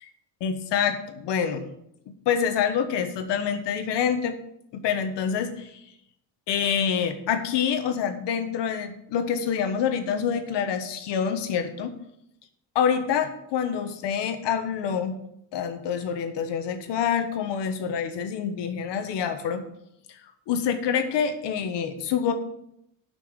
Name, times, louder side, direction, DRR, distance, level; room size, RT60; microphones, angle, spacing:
voice 1, 0.4-1.7 2.2-4.4 4.7-5.8 6.5-11.9 12.7-15.2 15.5-19.6 20.5-22.3, left 7 dB, 70° left, 7 dB, 1.4 m, -26 dB
10.5 x 6.0 x 6.5 m, 0.76 s
cardioid pair, 175°, 43 cm